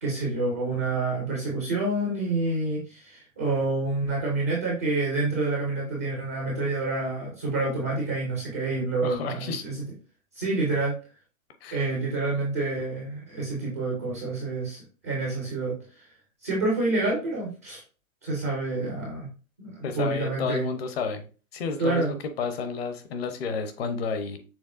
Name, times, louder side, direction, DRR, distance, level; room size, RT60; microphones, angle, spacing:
voice 1, 0.0-9.8 10.3-11.0 11.7-16.1 16.4-17.8 18.2-19.3 19.6-20.7 21.8-22.1, right 2 dB, 15° right, -3 dB, 0.4 m, -28 dB
voice 2, 9.0-9.6 11.6-11.8 19.8-21.2 21.5-24.4, left 5 dB, 45° left, 8 dB, 0.8 m, -31 dB
6.3 x 3.4 x 2.4 m, 0.35 s
hypercardioid pair, 165°, 43 cm